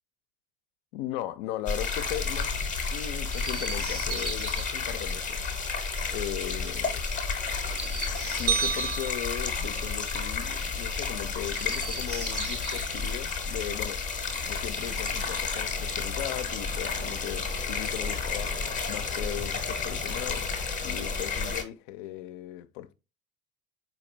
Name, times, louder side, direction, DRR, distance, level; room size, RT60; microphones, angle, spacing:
voice 1, 0.9-2.6 2.9-5.4 6.1-7.0 8.4-14.0 14.5-20.5 20.8-22.9, left 13 dB, 55° left, 0.4 m, -37 dB
sound 1, 1.7-21.6, left 4 dB, 20° left, 0.7 m, -31 dB
Chirp tweet, 3.3-4.6 7.6-9.1 11.5-12.9 14.3-15.4 16.5-17.4, right 3 dB, 90° right, 0.8 m, -39 dB
sound 2, 8.5-10.8, right 8 dB, 55° right, 0.5 m, -32 dB
4.3 x 2.3 x 3.1 m
figure-of-eight pair, 55°, 41 cm